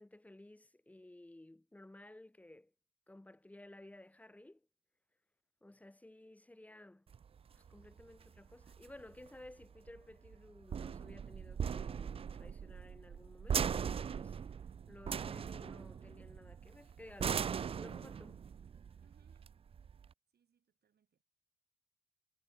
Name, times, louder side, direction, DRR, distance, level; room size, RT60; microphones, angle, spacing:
voice 1, 0.0-2.7 3.1-4.7 5.6-7.1 7.5-14.4 14.9-18.4, left 1 dB, 5° left, 0.7 m, -56 dB
sound 1, 7.1-20.1, right 7 dB, 30° right, 0.4 m, -40 dB
voice 2, 19.0-19.6 20.3-21.2, right 8 dB, 55° right, 7.9 m, -74 dB
cardioid pair, 90°, 20 cm